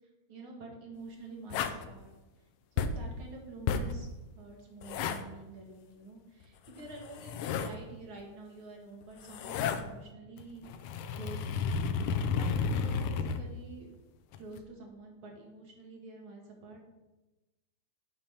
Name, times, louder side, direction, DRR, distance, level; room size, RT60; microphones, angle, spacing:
voice 1, 0.3-2.1 2.7-4.1 4.3-10.7 11.1-11.7 12.1-14.0 14.4-16.8, right 2 dB, 70° right, 0 dB, 2.3 m, -48 dB
sound 1, 1.5-1.9 2.8-3.1 3.7-4.0 4.8-5.2 6.8-7.8 9.0-9.8 10.4-13.4 14.3-14.6, left 6 dB, 90° left, 1.5 m, -32 dB
8.6 x 2.9 x 6.3 m, 1.1 s
omnidirectional pair, 2.4 m